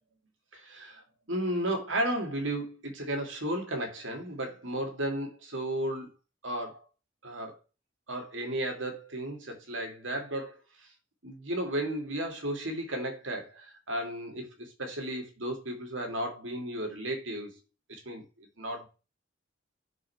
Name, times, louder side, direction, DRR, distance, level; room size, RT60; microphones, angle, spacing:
voice 1, 0.5-1.0 1.3-6.1 6.4-6.8 7.2-7.6 8.1-10.9 11.2-17.6 17.9-18.9, right 1 dB, 70° right, 2.5 m, -34 dB
6.5 x 4.7 x 4.7 m
head